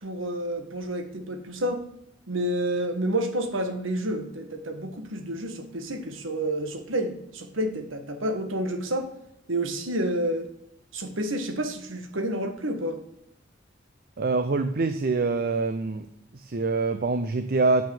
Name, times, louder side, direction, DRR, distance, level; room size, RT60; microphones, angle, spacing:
voice 1, 0.0-1.8 2.3-9.1 9.5-10.5 10.9-13.0, right 1 dB, 85° right, 6 dB, 1.6 m, -29 dB
voice 2, 14.2-16.1 16.3-17.8, right 3 dB, 50° right, 9 dB, 0.6 m, -25 dB
9.0 x 6.2 x 7.1 m, 0.78 s
head